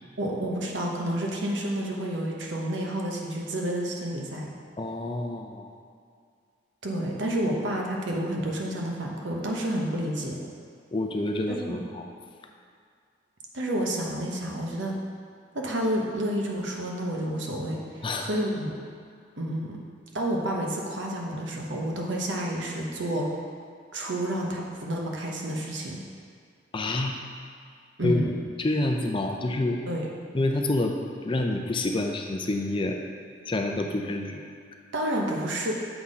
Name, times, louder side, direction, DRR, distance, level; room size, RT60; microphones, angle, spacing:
voice 1, 0.2-4.5 6.8-10.4 11.5-11.8 13.5-14.9 15.5-18.8 19.4-19.8 20.1-23.3 23.9-26.0 28.0-28.3 29.9-30.1 34.9-35.7, right 1 dB, 80° right, -1 dB, 1.0 m, -30 dB
voice 2, 4.8-5.7 10.9-12.1 18.0-18.3 26.7-27.2 28.0-29.8 30.3-33.0 33.5-34.5, left 2 dB, 25° left, 3 dB, 0.5 m, -28 dB
7.1 x 4.2 x 4.9 m, 2.2 s
head